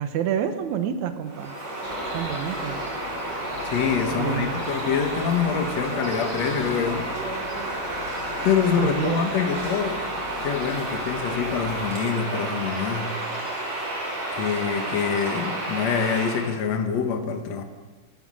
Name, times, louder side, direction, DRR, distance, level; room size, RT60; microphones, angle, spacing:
voice 1, 0.0-1.5 2.1-2.8 4.1-4.6 8.8-9.2, right 9 dB, 70° right, 8 dB, 2.3 m, -28 dB
Bird vocalization bird call bird song, 1.3-16.5, right 1 dB, 50° right, 5.2 m, -31 dB
sound 1, 1.9-11.9, left 7 dB, 85° left, 2.9 m, -42 dB
voice 2, 3.6-7.1 8.4-10.0 10.4-13.1 14.4-17.6, left 7 dB, 60° left, 5 dB, 2.3 m, -25 dB
22.5 x 9.0 x 6.4 m, 1.3 s
omnidirectional pair, 3.9 m